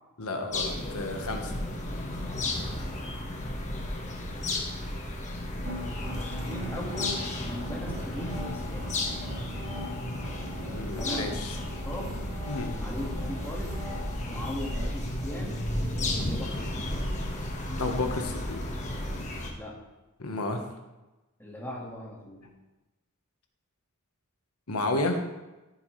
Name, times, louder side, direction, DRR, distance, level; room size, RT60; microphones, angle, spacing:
voice 1, 0.2-1.6 10.6-11.6 12.5-12.7 17.8-18.6 20.2-20.6 24.7-25.2, left 2 dB, 80° left, 4 dB, 1.4 m, -31 dB
sound 1, 0.5-19.5, left 1 dB, 35° left, 1.4 m, -33 dB
voice 2, 2.5-2.9 3.6-4.4 6.1-8.9 11.0-12.2 12.8-13.8 14.3-15.6 16.2-17.1 19.6-19.8 21.4-22.5, equal, 10° left, -3 dB, 1.9 m, -39 dB
sound 2, 5.6-14.9, left 1 dB, 60° right, 3.7 m, -40 dB
14.0 x 7.3 x 3.3 m, 1.1 s
head